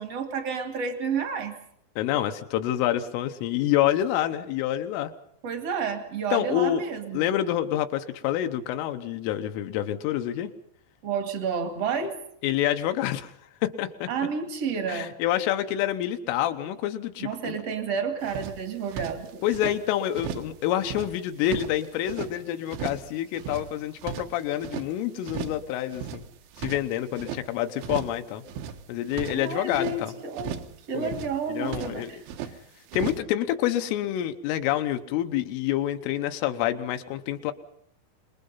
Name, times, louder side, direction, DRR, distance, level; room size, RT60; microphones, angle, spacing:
voice 1, 0.0-1.6 5.4-7.3 11.0-12.1 14.1-15.1 17.2-19.4 29.3-30.6 30.9-32.2, right 5 dB, 50° right, 7 dB, 1.9 m, -30 dB
voice 2, 2.0-5.1 6.3-6.8 7.1-10.5 12.4-13.3 13.6-14.1 14.9-17.5 19.4-26.2 26.6-28.4 28.9-30.1 30.9-31.1 31.5-32.1 32.9-37.5, left 12 dB, 80° left, 7 dB, 3.4 m, -27 dB
sound 1, 18.2-19.8 20.1-20.5 20.8-22.3 22.7-23.1 23.3-24.9 25.2-25.6 25.9-27.4 27.8-28.2 28.5-30.0 30.3-30.8 31.0-32.5 32.9-33.2, right 8 dB, 70° right, 3.4 m, -36 dB
26.5 x 21.0 x 5.6 m, 0.70 s
omnidirectional pair, 5.9 m